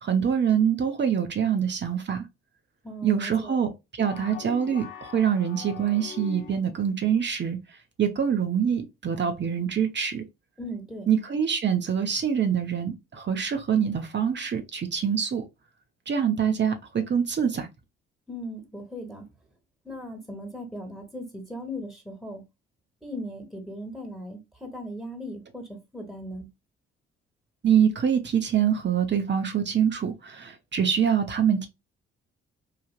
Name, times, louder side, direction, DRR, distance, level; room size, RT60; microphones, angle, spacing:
voice 1, 0.0-2.2 3.0-3.7 4.0-7.6 8.0-10.2 11.1-15.4 16.1-17.7 27.6-31.7, right 8 dB, 40° right, 0.7 m, -25 dB
voice 2, 2.8-3.6 10.6-11.1 18.3-19.3 19.8-22.4 23.0-26.5, equal, ahead, 1.1 m, -38 dB
sound 1, 4.0-6.9, left 7 dB, 40° left, 0.6 m, -42 dB
3.2 x 2.4 x 2.3 m
hypercardioid pair, 45°, 29 cm